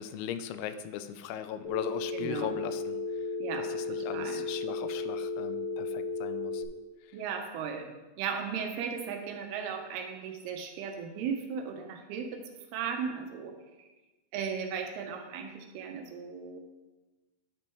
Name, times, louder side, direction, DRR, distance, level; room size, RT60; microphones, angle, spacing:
voice 1, 0.0-3.0 3.6-6.6, left 9 dB, 85° left, 11 dB, 2.5 m, -39 dB
Telephone, 1.6-6.6, left 3 dB, 65° left, 2.0 m, -34 dB
voice 2, 2.1-2.6 3.4-4.4 7.1-12.4 12.7-13.5 13.8-13.9 14.3-16.6, right 6 dB, 85° right, 4 dB, 2.7 m, -36 dB
10.5 x 4.4 x 4.6 m, 1.1 s
omnidirectional pair, 4.5 m